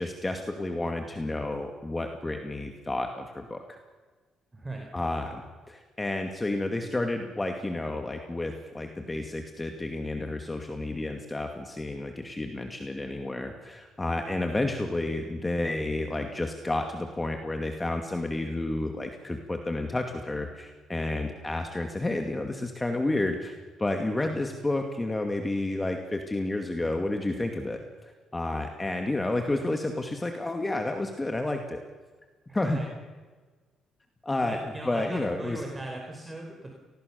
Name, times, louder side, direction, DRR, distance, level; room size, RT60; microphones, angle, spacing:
voice 1, 0.0-3.8 4.9-5.4 5.7-31.8 32.5-32.8 34.2-34.6 34.9-35.6, left 2 dB, 15° left, 4 dB, 2.3 m, -31 dB
voice 2, 4.5-4.9 32.5-32.9 34.4-36.7, right 2 dB, 15° right, 2 dB, 4.1 m, -38 dB
28.0 x 20.0 x 7.0 m, 1.4 s
cardioid pair, 105°, 0 cm